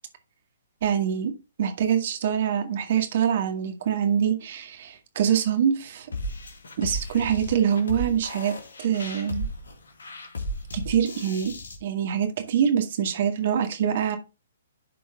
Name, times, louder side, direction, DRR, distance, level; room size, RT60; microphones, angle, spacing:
voice 1, 0.8-1.3 1.6-6.1 6.8-8.5 8.8-9.4 10.7-11.5 11.8-14.2, right 8 dB, 55° right, 2.0 m, -24 dB
sound 1, 6.1-11.8, left 1 dB, 70° left, 2.2 m, -35 dB
11.0 x 4.6 x 3.7 m
figure-of-eight pair, 130°, 0 cm